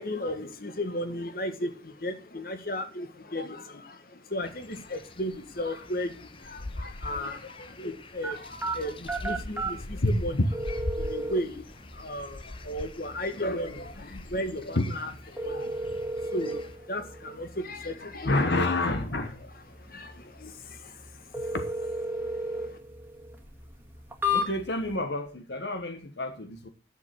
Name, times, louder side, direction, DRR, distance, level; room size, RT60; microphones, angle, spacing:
voice 1, 0.0-10.4 10.9-18.6 19.7-21.5 22.1-22.8, left 1 dB, 55° left, 1.6 m, -35 dB
sound 1, 4.4-16.7, left 2 dB, 30° left, 0.8 m, -42 dB
sound 2, 8.2-24.9, equal, 10° right, 1.7 m, -36 dB
voice 2, 10.0-10.5 14.7-14.9 18.2-19.4 21.5-21.6 24.3-26.7, left 2 dB, 75° left, 1.3 m, -28 dB
11.0 x 6.8 x 5.9 m
head